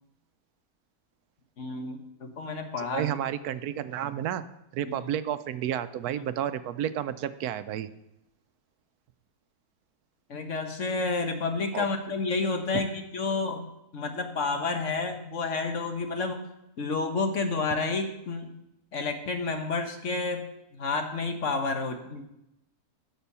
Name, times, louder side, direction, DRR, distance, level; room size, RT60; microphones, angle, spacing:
voice 1, 1.6-3.0 10.3-16.4 16.8-18.6 18.9-22.2, left 3 dB, 55° left, 6 dB, 1.4 m, -30 dB
voice 2, 2.8-4.4 4.7-7.9 11.7-11.9 12.7-12.8, right 10 dB, 85° right, 13 dB, 1.1 m, -31 dB
11.5 x 6.9 x 5.6 m, 0.86 s
omnidirectional pair, 1.6 m